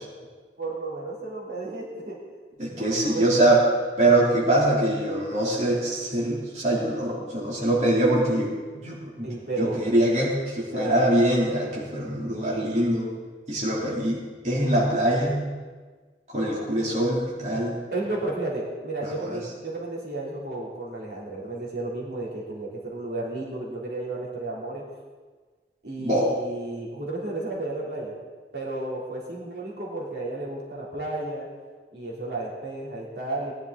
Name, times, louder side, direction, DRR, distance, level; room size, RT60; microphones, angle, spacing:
voice 1, 0.6-2.2 2.8-3.3 9.2-9.9 10.7-11.1 17.9-24.8 25.8-28.1 28.5-31.5 31.9-33.5, right 2 dB, 65° right, -5 dB, 3.3 m, -32 dB
voice 2, 2.6-3.6 4.0-9.3 9.6-13.1 13.5-14.2 14.4-15.4 16.3-17.8 19.0-19.4 26.0-26.3, right 1 dB, 40° right, -6 dB, 3.1 m, -23 dB
18.5 x 11.0 x 4.0 m, 1.4 s
head